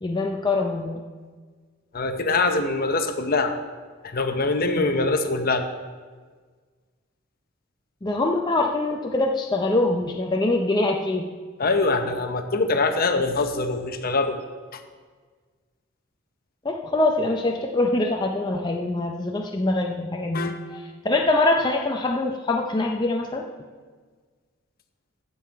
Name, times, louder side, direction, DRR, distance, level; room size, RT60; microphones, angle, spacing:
voice 1, 0.0-1.0 8.0-11.2 16.6-23.4, left 2 dB, 20° left, 1 dB, 0.5 m, -24 dB
voice 2, 1.9-3.5 4.0-5.6 11.6-14.4 14.7-14.8 20.3-20.6, left 3 dB, 45° left, 7 dB, 0.8 m, -23 dB
15.0 x 5.6 x 4.6 m, 1.5 s
head